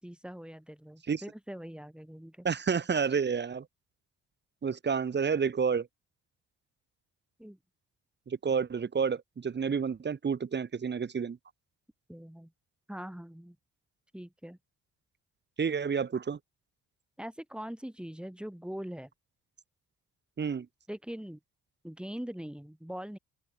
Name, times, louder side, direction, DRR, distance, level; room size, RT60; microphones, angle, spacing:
voice 1, 0.0-2.5 7.4-7.6 12.1-12.5 12.9-13.6 14.1-14.6 17.2-19.1 20.9-21.4 21.8-23.2, equal, 5° right, 5.4 m, -42 dB
voice 2, 2.4-3.6 4.6-5.9 8.3-11.4 15.6-16.4 20.4-20.7, right 6 dB, 35° right, 1.6 m, -30 dB
open air
cardioid pair, 90°, 30 cm